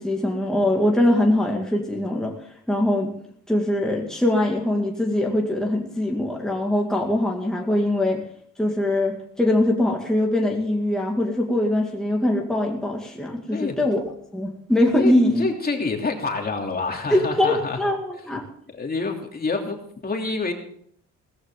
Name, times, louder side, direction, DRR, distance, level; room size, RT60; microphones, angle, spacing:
voice 1, 0.0-2.3 2.7-3.1 3.5-8.2 8.6-14.0 14.3-15.5 17.1-18.4, left 1 dB, ahead, -1 dB, 2.3 m, -22 dB
voice 2, 15.0-17.8 18.7-20.5, left 3 dB, 30° left, 2 dB, 3.0 m, -27 dB
17.0 x 14.0 x 3.9 m, 0.64 s
cardioid pair, 90°, 30 cm